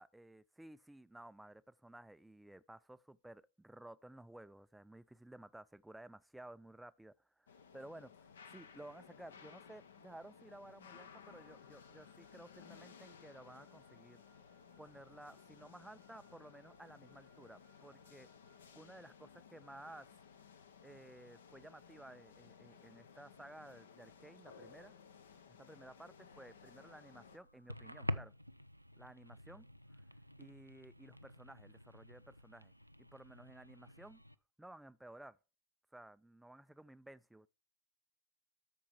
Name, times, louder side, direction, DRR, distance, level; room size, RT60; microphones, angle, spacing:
voice 1, 0.0-7.1 7.4-14.2 14.8-18.3 18.7-20.1 20.8-24.9 25.6-28.3 29.0-29.7 30.4-32.7 33.0-34.2 34.6-35.4 35.9-37.5, right 1 dB, 5° right, 0.3 m, -55 dB
sound 1, 7.5-27.4, left 6 dB, 65° left, 0.7 m, -59 dB
Wind instrument woodwind instrument, 11.1-18.8, right 6 dB, 35° right, 0.8 m, -75 dB
sound 2, 26.2-34.3, equal, 90° right, 0.3 m, -48 dB
13.0 x 4.6 x 4.5 m
figure-of-eight pair, 90°, 0 cm